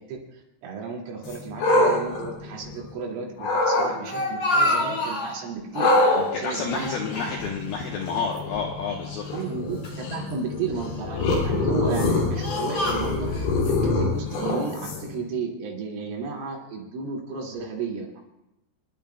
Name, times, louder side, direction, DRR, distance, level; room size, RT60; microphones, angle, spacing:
voice 1, 0.0-6.9 9.3-18.2, right 4 dB, 75° right, -1 dB, 4.8 m, -33 dB
sound 1, 1.2-3.0 3.4-3.9 5.8-15.2, left 2 dB, 65° left, 4.5 m, -25 dB
Speech, 3.5-5.4 5.7-6.3 6.7-7.8 8.1-8.2 9.0-10.0 10.7-11.2 11.8-13.5, left 1 dB, 40° left, 3.1 m, -28 dB
voice 2, 6.3-9.2, left 5 dB, 90° left, 1 dB, 2.1 m, -30 dB
28.0 x 12.0 x 2.2 m, 0.90 s
omnidirectional pair, 5.8 m